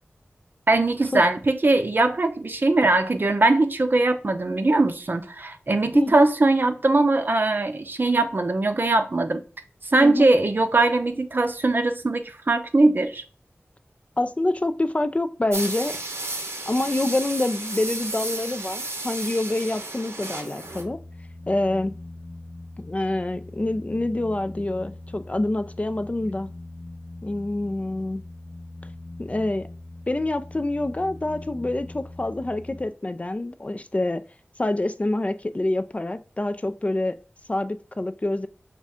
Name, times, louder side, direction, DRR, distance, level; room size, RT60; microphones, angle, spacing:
voice 1, 0.7-9.4 9.8-13.2, right 2 dB, 50° right, 0.5 m, -21 dB
voice 2, 5.9-6.3 10.0-10.3 14.2-16.0 16.7-21.0 21.5-21.9 22.8-26.5 27.2-28.2 29.2-29.7 30.1-34.2 34.6-37.1 37.5-38.5, left 2 dB, 30° left, 0.3 m, -26 dB
sound 1, 15.5-20.8, right 2 dB, 80° right, 0.8 m, -33 dB
sound 2, 20.6-32.8, left 2 dB, 70° left, 0.7 m, -41 dB
5.3 x 2.4 x 3.5 m
wide cardioid pair, 55°, 4 cm